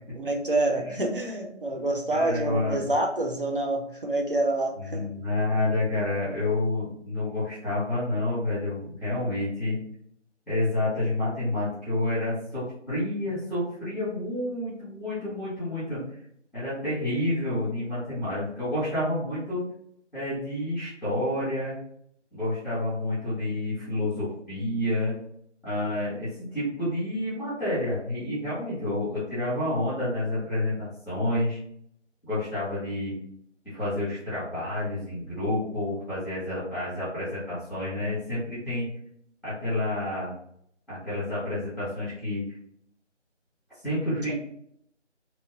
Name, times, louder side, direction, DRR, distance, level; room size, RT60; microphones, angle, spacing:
voice 1, 0.2-5.1 44.3-44.4, right 2 dB, 45° right, 2 dB, 0.6 m, -27 dB
voice 2, 2.1-2.9 4.8-9.8 10.5-16.0 16.5-19.6 20.1-21.7 22.3-25.2 25.6-31.6 32.2-33.1 33.6-38.9 39.4-40.3 40.9-42.6 43.8-44.3, left 1 dB, ahead, -13 dB, 0.7 m, -29 dB
3.0 x 2.1 x 3.4 m, 0.69 s
figure-of-eight pair, 165°, 37 cm